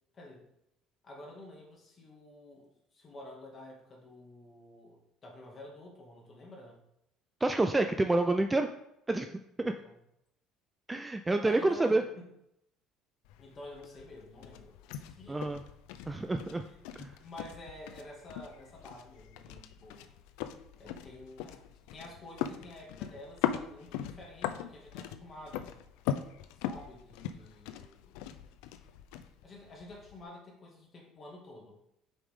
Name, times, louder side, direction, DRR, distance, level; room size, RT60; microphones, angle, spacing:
voice 1, 0.1-0.5 1.0-6.8 9.6-10.0 11.4-12.3 13.4-15.6 16.6-16.8 17.2-20.1 20.8-21.6 21.9-25.8 26.6-28.3 29.4-31.8, left 1 dB, 30° left, -2 dB, 2.1 m, -50 dB
voice 2, 7.4-8.7 9.1-9.3 9.6-9.7 10.9-12.0 15.3-15.6 16.1-16.6 17.0-17.1, right 2 dB, 10° right, 6 dB, 0.3 m, -28 dB
sound 1, 13.2-30.2, left 10 dB, 90° left, 0.4 m, -40 dB
7.0 x 5.1 x 3.6 m, 0.79 s
cardioid pair, 140°, 0 cm